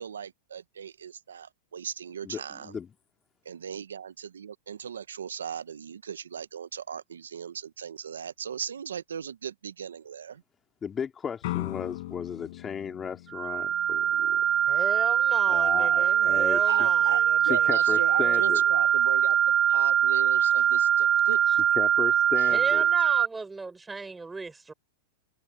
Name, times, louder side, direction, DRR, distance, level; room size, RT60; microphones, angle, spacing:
voice 1, 0.0-2.8 3.4-10.4 16.7-19.4 19.7-21.4 22.4-22.6, right 7 dB, 85° right, 1.0 m, -37 dB
voice 2, 2.2-2.9 10.8-14.4 15.5-16.9 17.4-18.6 21.7-22.9, left 7 dB, 25° left, 2.7 m, -35 dB
sound 1, 11.4-14.3, left 18 dB, 60° left, 6.9 m, -37 dB
sound 2, 13.3-23.3, right 9 dB, 30° right, 0.5 m, -23 dB
voice 3, 14.7-19.0 22.5-24.7, right 3 dB, 10° right, 5.9 m, -37 dB
hypercardioid pair, 105°, 0 cm